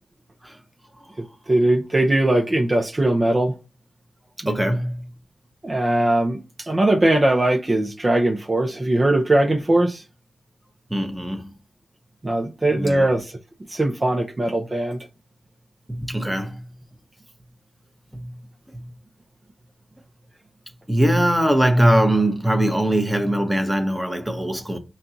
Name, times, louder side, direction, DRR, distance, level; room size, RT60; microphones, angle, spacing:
voice 1, 1.5-3.5 5.6-10.0 12.2-13.3 13.7-15.0, right 1 dB, 35° right, 0.6 m, -20 dB
voice 2, 4.5-5.0 10.9-11.6 12.7-13.1 15.9-16.7 18.1-18.3 18.7-18.9 20.9-24.8, right 1 dB, 10° right, 0.9 m, -21 dB
4.3 x 2.3 x 3.9 m
cardioid pair, 60°, 0 cm